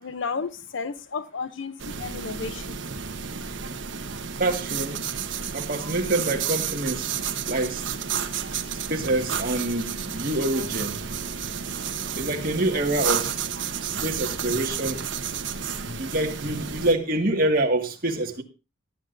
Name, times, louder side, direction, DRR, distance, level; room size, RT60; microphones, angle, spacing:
voice 1, 0.0-2.8, left 5 dB, 70° left, 0.7 m, -33 dB
sound 1, 1.8-16.9, right 7 dB, 70° right, 1.2 m, -31 dB
voice 2, 4.3-5.0 5.5-7.1 7.5-7.9 8.9-11.0 12.2-13.3 13.8-15.0 15.8-18.4, right 1 dB, 45° right, 2.0 m, -26 dB
18.5 x 11.0 x 2.7 m
head